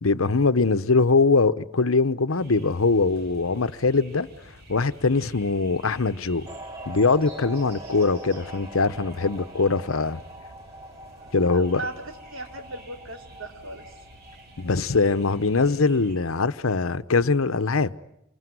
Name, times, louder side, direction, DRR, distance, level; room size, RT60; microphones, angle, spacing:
voice 1, 0.0-4.3 4.7-6.5 6.9-10.2 11.3-11.8 14.6-17.9, left 3 dB, 80° left, 0.9 m, -22 dB
sound 1, 2.3-16.2, right 1 dB, 50° right, 6.7 m, -49 dB
sound 2, 6.5-15.5, right 1 dB, 20° right, 2.5 m, -43 dB
voice 2, 11.2-13.8, right 2 dB, 70° right, 3.6 m, -38 dB
26.5 x 22.0 x 9.5 m
head